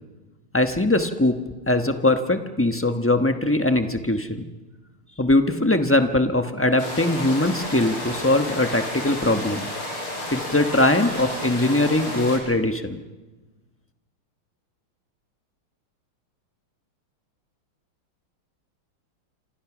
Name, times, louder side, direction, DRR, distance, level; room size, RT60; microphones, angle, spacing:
voice 1, 0.5-1.4 1.7-4.5 5.2-9.7 10.3-13.0, left 2 dB, 10° left, 7 dB, 0.6 m, -21 dB
sound 1, 6.8-12.4, left 1 dB, 85° left, 6.5 m, -32 dB
27.0 x 26.5 x 6.2 m, 1.2 s
omnidirectional pair, 2.3 m